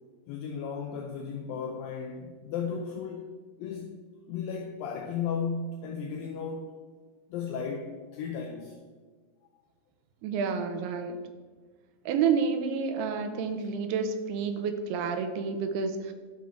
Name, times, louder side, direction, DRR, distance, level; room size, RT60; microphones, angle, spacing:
voice 1, 0.3-3.3 3.6-4.0 4.3-6.7 7.3-8.8, left 6 dB, 80° left, 2 dB, 2.2 m, -35 dB
voice 2, 10.2-11.2 12.1-16.1, right 6 dB, 90° right, 8 dB, 2.7 m, -29 dB
11.5 x 6.0 x 3.6 m, 1.4 s
omnidirectional pair, 4.5 m